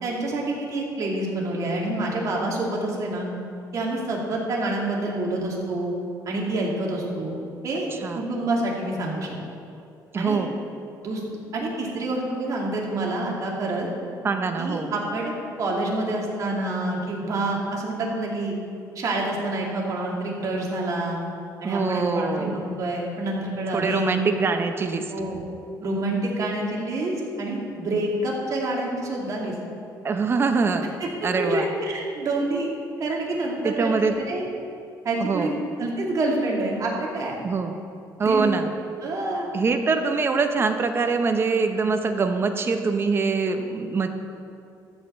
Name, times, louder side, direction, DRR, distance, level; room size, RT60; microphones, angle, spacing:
voice 1, 0.0-3.3 3.7-5.9 6.3-7.4 7.6-9.3 10.2-10.4 11.0-11.2 11.5-13.9 14.6-18.5 18.9-21.2 21.6-24.2 25.1-25.4 25.8-29.5 31.0-31.1 31.4-32.7 33.0-33.9 34.3-34.5 35.0-37.4 38.2-38.6 39.0-39.5, right 2 dB, 45° right, -2 dB, 2.5 m, -27 dB
voice 2, 10.1-10.5 14.2-14.9 21.6-22.6 23.7-25.0 30.0-30.9 31.2-31.7 33.6-34.1 35.2-35.5 37.4-37.7 38.2-38.7 39.5-44.1, right 4 dB, 30° right, 7 dB, 0.9 m, -24 dB
13.5 x 5.4 x 7.2 m, 2.5 s
cardioid pair, 125°, 7 cm